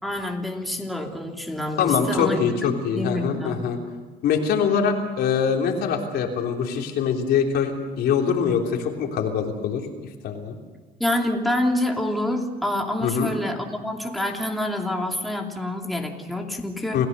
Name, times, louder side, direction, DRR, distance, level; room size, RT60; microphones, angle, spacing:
voice 1, 0.0-2.4 2.9-3.6 11.0-17.1, left 1 dB, ahead, 1 dB, 3.0 m, -27 dB
voice 2, 1.8-3.8 4.2-9.8 10.2-10.6 13.0-13.3 16.9-17.1, left 6 dB, 70° left, 2 dB, 3.5 m, -23 dB
28.0 x 16.0 x 6.9 m, 1.3 s
cardioid pair, 110°, 17 cm